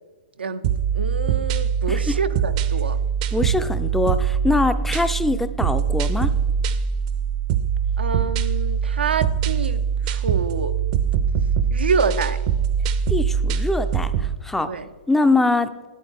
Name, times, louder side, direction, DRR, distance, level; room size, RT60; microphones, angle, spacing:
sound 1, 0.6-14.4, right 7 dB, 45° right, 0.6 m, -23 dB
voice 1, 0.9-3.0 8.0-10.7 11.7-12.4 14.6-14.9, right 5 dB, 85° right, 10 dB, 0.6 m, -26 dB
voice 2, 1.9-2.2 3.3-6.3 13.1-14.7 15.1-15.9, left 2 dB, 5° left, 11 dB, 0.4 m, -23 dB
10.5 x 8.6 x 3.5 m, 1.3 s
hypercardioid pair, 125°, 5 cm